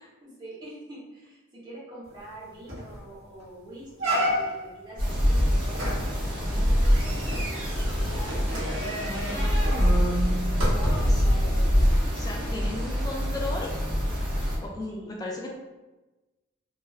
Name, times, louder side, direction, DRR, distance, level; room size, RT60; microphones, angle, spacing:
voice 1, 0.2-10.2 10.7-11.9 14.8-15.2, right 1 dB, 20° right, -8 dB, 1.0 m, -44 dB
sound 1, 2.2-2.3 2.7-3.0 3.4-3.5 4.0-4.7 5.7-11.2 11.8-11.9, equal, 70° right, 1.0 m, -30 dB
sound 2, 5.0-14.6, equal, 45° right, 1.1 m, -25 dB
voice 2, 10.8-11.2 12.1-13.7 14.6-15.5, left 2 dB, 20° left, -1 dB, 0.3 m, -36 dB
3.0 x 2.5 x 2.4 m, 1.1 s
head